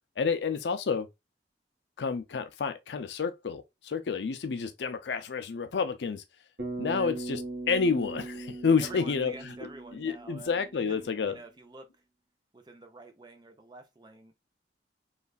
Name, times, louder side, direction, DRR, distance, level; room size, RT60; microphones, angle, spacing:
voice 1, 0.2-1.1 2.0-6.2 6.8-7.4 7.7-9.5 9.9-11.4, left 5 dB, 70° left, 0.4 m, -29 dB
Bass guitar, 6.6-11.0, right 2 dB, 65° right, 1.1 m, -39 dB
voice 2, 8.8-11.9 12.5-14.4, right 2 dB, 25° right, 0.5 m, -48 dB
3.2 x 2.3 x 2.3 m
head